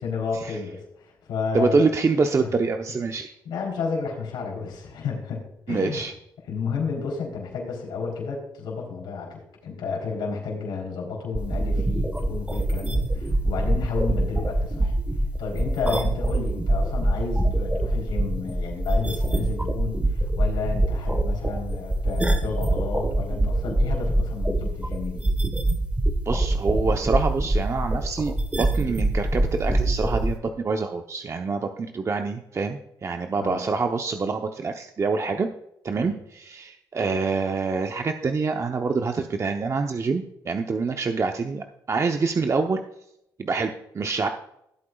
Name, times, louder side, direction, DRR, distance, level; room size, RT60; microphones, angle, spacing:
voice 1, 0.0-1.8 2.4-2.5 3.5-6.0 6.4-14.9 15.4-25.2 33.4-33.6 36.0-36.1, left 5 dB, 80° left, -2 dB, 3.6 m, -31 dB
voice 2, 1.5-3.3 5.7-6.1 26.3-35.5 35.8-42.8 43.4-44.3, right 4 dB, 40° right, 5 dB, 0.8 m, -26 dB
sound 1, 11.3-30.3, right 1 dB, 15° right, 1.4 m, -24 dB
16.0 x 8.4 x 2.4 m, 0.81 s
supercardioid pair, 70°, 8 cm